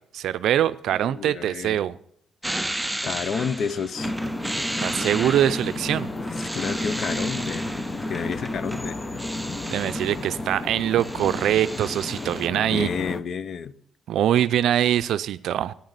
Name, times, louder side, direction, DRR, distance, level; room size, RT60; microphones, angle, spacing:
voice 1, 0.1-2.0 4.8-6.1 9.7-12.9 14.1-15.7, right 11 dB, 75° right, 0.4 m, -23 dB
voice 2, 1.0-1.8 2.4-2.5 3.0-4.2 6.4-7.6 8.1-9.0 12.7-13.8, left 6 dB, 60° left, 0.7 m, -30 dB
sound 1, 2.4-10.4 10.7-12.5, right 1 dB, 10° right, 0.4 m, -34 dB
sound 2, 4.0-13.2, left 2 dB, 30° left, 0.9 m, -32 dB
10.5 x 9.4 x 8.0 m
cardioid pair, 90°, 0 cm